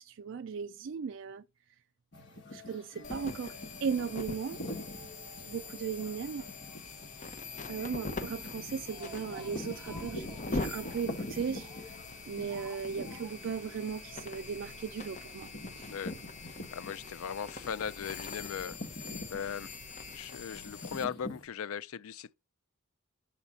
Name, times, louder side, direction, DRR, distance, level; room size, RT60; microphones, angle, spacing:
voice 1, 0.0-1.4 2.5-4.6 5.4-6.5 7.7-12.0 12.3-15.5 15.8-15.9, right 6 dB, 55° right, 0.3 m, -37 dB
sound 1, 2.1-17.3 17.6-21.4, left 1 dB, 55° left, 1.9 m, -45 dB
sound 2, 3.0-21.0, left 3 dB, 35° left, 0.9 m, -43 dB
Speech, 8.7-12.1 12.5-13.6 13.9-14.0 14.3-14.4, right 2 dB, 10° right, 2.5 m, -53 dB
voice 2, 15.8-16.1 16.7-19.7 20.1-22.3, left 7 dB, 75° left, 0.4 m, -39 dB
7.4 x 4.1 x 5.3 m
head